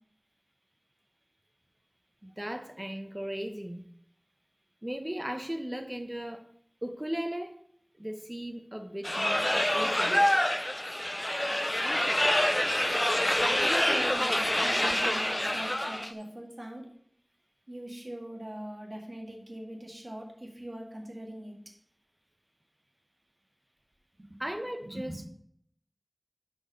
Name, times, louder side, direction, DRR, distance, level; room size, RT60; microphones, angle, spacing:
voice 1, 2.2-3.8 4.8-6.4 6.8-7.6 8.0-10.3 24.4-25.2, equal, 20° right, 7 dB, 1.0 m, -37 dB
sound 1, 9.0-16.1, left 1 dB, 30° left, 0.4 m, -26 dB
voice 2, 13.6-16.9 17.7-21.6 24.2-24.4 24.8-25.3, right 1 dB, 50° right, 0 dB, 1.9 m, -41 dB
6.4 x 6.0 x 5.2 m, 0.68 s
wide cardioid pair, 45°, 0 cm